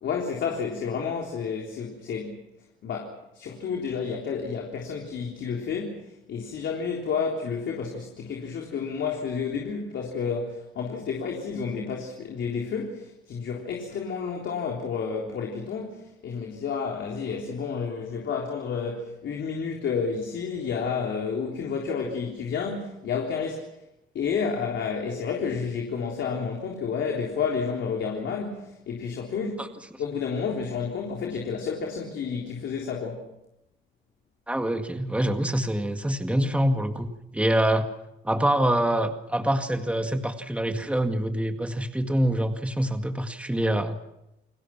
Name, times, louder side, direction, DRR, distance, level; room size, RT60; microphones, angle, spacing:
voice 1, 0.0-2.4 2.8-23.7 24.1-29.7 30.0-33.3, left 5 dB, 70° left, 3.8 m, -30 dB
voice 2, 34.5-37.9 38.2-44.0, right 1 dB, 5° right, 2.0 m, -25 dB
29.5 x 20.0 x 6.0 m
cardioid pair, 90°, 20 cm